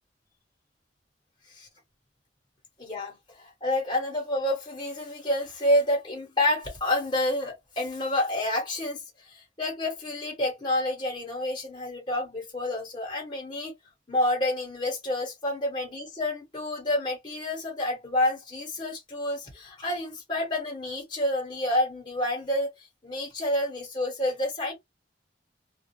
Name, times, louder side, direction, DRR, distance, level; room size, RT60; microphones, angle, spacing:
voice 1, 2.8-13.7 14.1-24.7, left 1 dB, 25° left, 1.1 m, -29 dB
2.4 x 2.0 x 3.0 m
head